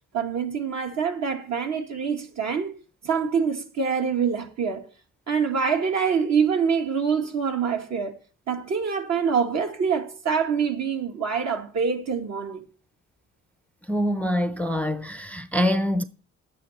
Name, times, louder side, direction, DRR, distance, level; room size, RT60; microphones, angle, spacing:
voice 1, 0.1-2.7 3.0-4.8 5.3-8.2 8.5-12.6, right 6 dB, 55° right, 2.0 m, -25 dB
voice 2, 13.9-16.0, equal, 5° left, 0.6 m, -25 dB
11.0 x 9.2 x 4.2 m
cardioid pair, 100°, 32 cm